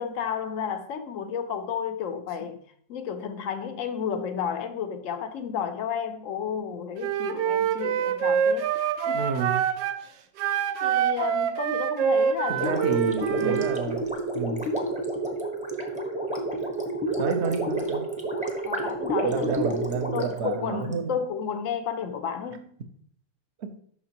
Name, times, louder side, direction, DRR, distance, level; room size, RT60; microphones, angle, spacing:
voice 1, 0.0-2.6 2.9-8.7 9.1-9.3 10.8-13.0 13.4-13.7 18.6-19.8 20.1-22.7, left 7 dB, 70° left, 0.7 m, -32 dB
Wind instrument woodwind instrument, 7.0-10.0 10.4-13.8, right 8 dB, 80° right, 1.3 m, -25 dB
voice 2, 9.1-9.6 12.5-14.1 14.3-14.6 17.2-18.1 19.2-21.1 23.6-23.8, right 5 dB, 55° right, 0.7 m, -30 dB
Gurgling, 12.5-20.9, right 1 dB, 5° right, 0.7 m, -29 dB
9.5 x 6.1 x 2.9 m
omnidirectional pair, 2.0 m